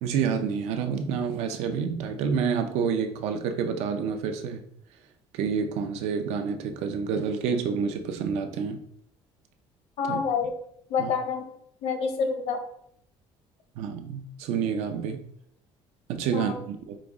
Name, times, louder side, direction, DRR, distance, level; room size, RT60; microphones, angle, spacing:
voice 1, 0.0-4.6 5.3-8.8 10.1-10.2 11.0-11.1 13.8-15.2 16.1-17.0, right 6 dB, 80° right, 6 dB, 0.5 m, -28 dB
voice 2, 10.0-10.5 10.9-11.5 11.8-12.6 16.3-16.6, left 5 dB, 65° left, 6 dB, 0.6 m, -27 dB
4.8 x 2.0 x 3.5 m, 0.72 s
cardioid pair, 155°, 11 cm